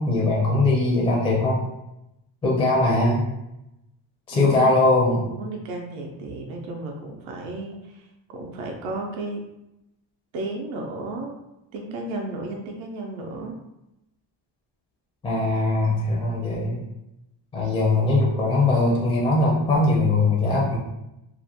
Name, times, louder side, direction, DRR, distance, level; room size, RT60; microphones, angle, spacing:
voice 1, 0.0-1.6 2.4-3.2 4.3-5.3 15.2-16.8 17.5-20.8, left 2 dB, 15° left, -4 dB, 0.4 m, -21 dB
voice 2, 4.3-4.7 5.3-9.4 10.3-11.4 11.7-13.6, right 2 dB, 80° right, 1 dB, 0.6 m, -33 dB
2.4 x 2.1 x 2.8 m, 0.89 s
cardioid pair, 140°, 47 cm